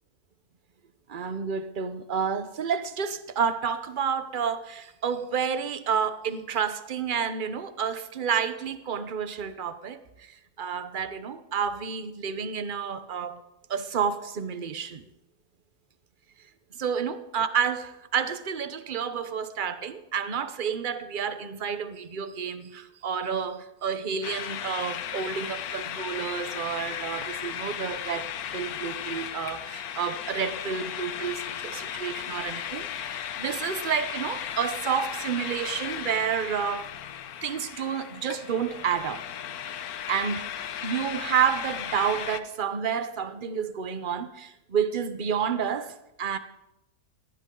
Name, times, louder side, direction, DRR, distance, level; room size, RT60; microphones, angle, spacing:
voice 1, 1.1-13.4 13.7-15.1 16.7-28.3 28.5-36.9 37.4-39.2 40.1-40.5 40.8-46.4, right 7 dB, 40° right, 0.9 m, -30 dB
sound 1, 24.2-42.4, left 9 dB, 80° left, 1.3 m, -36 dB
19.5 x 17.0 x 3.8 m
omnidirectional pair, 1.6 m